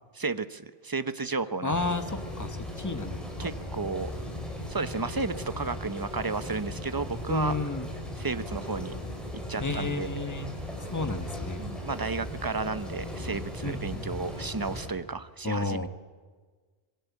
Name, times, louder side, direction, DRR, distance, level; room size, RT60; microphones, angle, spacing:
voice 1, 0.1-2.0 3.4-4.1 4.7-7.6 8.2-8.9 9.5-10.1 11.6-15.9, right 4 dB, 25° right, 13 dB, 0.8 m, -33 dB
voice 2, 1.6-3.5 7.3-7.9 9.6-10.5 10.8-11.7 13.6-14.1 15.4-15.9, left 3 dB, 20° left, 9 dB, 1.2 m, -32 dB
sound 1, 1.7-14.9, left 1 dB, ahead, 5.1 m, -37 dB
25.5 x 21.0 x 8.4 m, 1.5 s
omnidirectional pair, 1.0 m